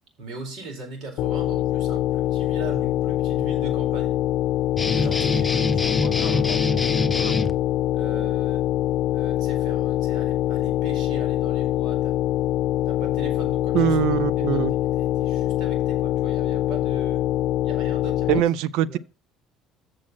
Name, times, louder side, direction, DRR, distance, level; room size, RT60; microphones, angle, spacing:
voice 1, 0.2-4.2 4.9-7.4 7.9-8.6 9.1-12.1 12.8-14.0 14.4-17.2 17.6-18.4 18.9-19.0, right 3 dB, 65° right, 4.5 m, -39 dB
sound 1, 1.2-18.4, left 13 dB, 70° left, 0.5 m, -24 dB
sound 2, 4.8-7.5, left 2 dB, 15° left, 0.8 m, -25 dB
voice 2, 13.7-14.7 18.3-19.0, right 12 dB, 80° right, 0.5 m, -22 dB
7.5 x 6.4 x 6.0 m
cardioid pair, 105°, 0 cm